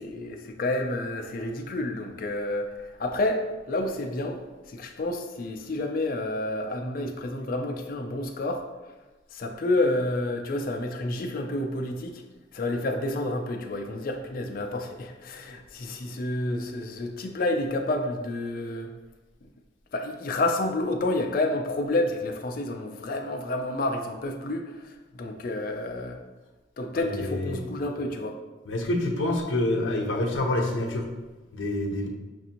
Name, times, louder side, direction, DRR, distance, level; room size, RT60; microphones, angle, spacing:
voice 1, 0.0-4.4 4.7-8.7 9.3-12.2 12.5-18.9 19.9-26.2 26.8-28.4, left 2 dB, 45° left, 4 dB, 0.4 m, -29 dB
voice 2, 26.9-27.7 28.7-31.1 31.5-32.1, left 1 dB, 80° left, 1 dB, 0.7 m, -27 dB
5.9 x 2.6 x 2.8 m, 1.2 s
head